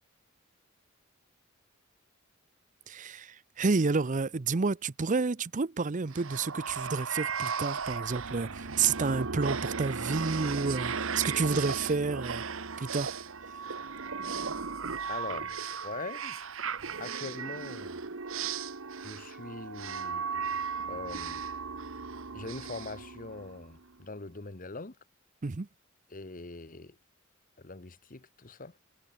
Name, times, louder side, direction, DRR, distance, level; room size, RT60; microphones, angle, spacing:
voice 1, 2.9-12.4 12.8-13.1 25.4-25.7, right 4 dB, 40° right, 0.6 m, -30 dB
sound 1, 6.1-23.8, right 5 dB, 80° right, 1.3 m, -36 dB
voice 2, 15.1-16.5 17.0-18.0 19.0-20.6 20.9-21.4 22.3-25.0 26.1-27.0 27.6-28.8, left 3 dB, 40° left, 1.2 m, -42 dB
head